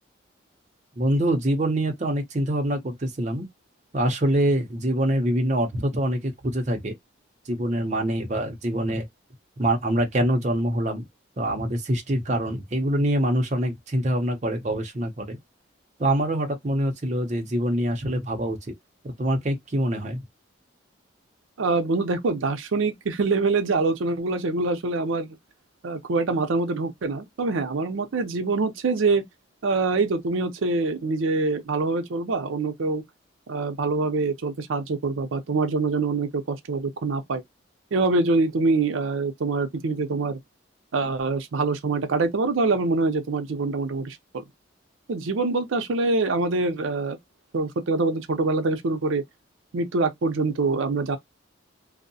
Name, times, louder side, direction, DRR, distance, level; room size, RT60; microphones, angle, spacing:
voice 1, 1.0-3.5 3.9-7.0 7.5-9.1 9.6-11.0 11.4-15.4 16.0-18.6 19.0-20.2, right 1 dB, 35° right, 0.6 m, -25 dB
voice 2, 21.6-25.4 25.8-29.2 29.6-33.0 33.5-37.4 37.9-40.4 40.9-44.2 45.1-47.2 47.5-49.2 49.7-51.2, right 3 dB, 85° right, 0.5 m, -25 dB
2.6 x 2.0 x 2.6 m
head